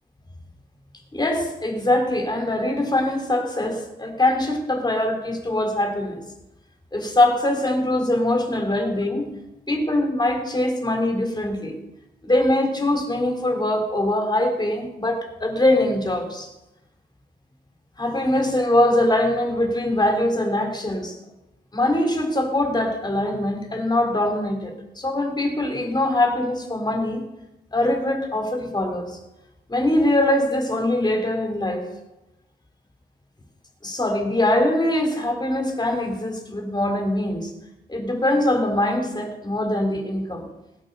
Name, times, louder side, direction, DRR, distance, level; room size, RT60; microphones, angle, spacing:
voice 1, 1.1-6.2 6.9-9.3 9.7-11.7 12.2-16.5 18.0-21.2 21.7-27.2 27.7-29.2 29.7-31.9 33.8-37.5 37.9-40.5, left 1 dB, 25° left, 3 dB, 3.5 m, -22 dB
18.5 x 9.2 x 6.8 m, 0.95 s
cardioid pair, 90°, 18 cm